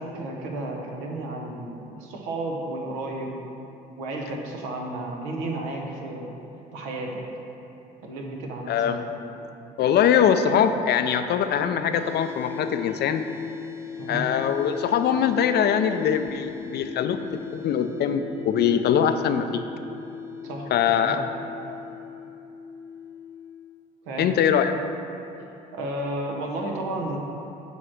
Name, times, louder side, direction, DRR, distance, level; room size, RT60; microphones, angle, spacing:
voice 1, 0.0-3.4 4.0-6.3 6.7-7.2 8.0-9.1 14.0-14.2 20.4-21.1 24.0-24.3 25.7-27.2, right 2 dB, 85° right, 0 dB, 1.0 m, -32 dB
voice 2, 8.7-9.0 9.8-13.4 14.1-19.6 20.7-21.3 21.7-21.8 24.2-24.7, left 8 dB, 55° left, 9 dB, 0.5 m, -22 dB
sound 1, 11.9-25.9, left 6 dB, 15° right, 1.1 m, -39 dB
7.1 x 3.2 x 5.9 m, 2.9 s
supercardioid pair, 70°, 20 cm